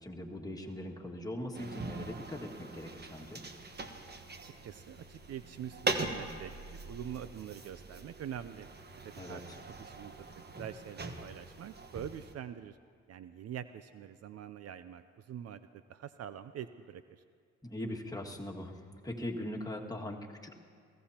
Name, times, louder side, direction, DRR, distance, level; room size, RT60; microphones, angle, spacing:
voice 1, 0.0-3.4 9.2-9.6 17.6-20.6, left 1 dB, 10° left, -1 dB, 2.0 m, -41 dB
sound 1, 1.5-12.3, right 3 dB, 35° right, 1.3 m, -42 dB
voice 2, 4.6-6.5 6.8-8.7 9.0-10.3 10.6-12.8 13.1-17.2, right 9 dB, 55° right, 12 dB, 0.5 m, -45 dB
23.0 x 16.0 x 2.9 m, 2.1 s
supercardioid pair, 65°, 31 cm